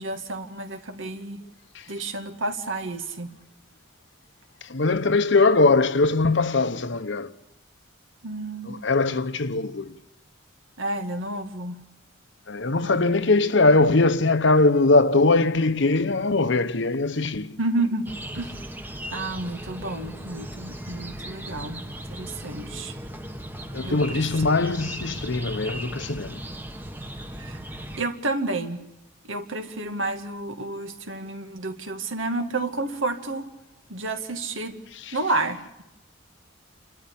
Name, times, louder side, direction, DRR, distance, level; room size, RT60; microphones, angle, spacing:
voice 1, 0.0-1.4 1.9-3.3 8.2-8.8 10.8-11.8 12.8-13.2 17.6-18.1 18.3-18.6 19.1-22.9 23.8-24.2 27.4-27.6 28.0-28.8 29.2-33.5 33.9-34.8 35.1-35.6, right 2 dB, 70° right, 2.1 m, -30 dB
voice 2, 4.6-7.3 8.6-9.9 12.5-17.6 23.7-26.4 35.0-35.2, left 3 dB, 60° left, 1.0 m, -21 dB
sound 1, 18.1-28.0, right 1 dB, 10° right, 1.2 m, -37 dB
29.0 x 13.0 x 9.9 m
head